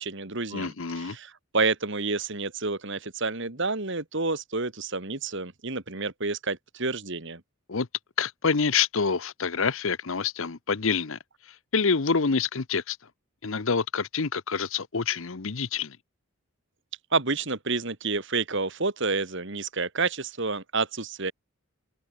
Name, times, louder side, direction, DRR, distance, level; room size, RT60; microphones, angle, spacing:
voice 1, 0.0-7.4 17.1-21.3, right 3 dB, 55° right, 2.1 m, -29 dB
voice 2, 0.5-1.2 7.7-7.9 8.2-11.2 11.7-13.0 13.4-16.0, left 5 dB, 60° left, 0.9 m, -27 dB
open air
head